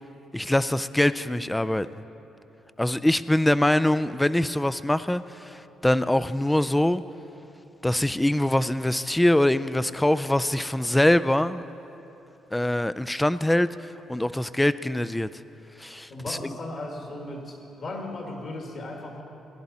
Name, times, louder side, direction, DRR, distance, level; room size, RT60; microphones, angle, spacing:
voice 1, 0.3-1.9 2.8-7.0 7.8-11.6 12.5-15.3 15.8-16.5, left 1 dB, 10° left, 14 dB, 0.3 m, -23 dB
voice 2, 16.1-19.2, left 2 dB, 50° left, 1 dB, 2.0 m, -36 dB
17.0 x 11.0 x 4.2 m, 3.0 s
cardioid pair, 90°, 0 cm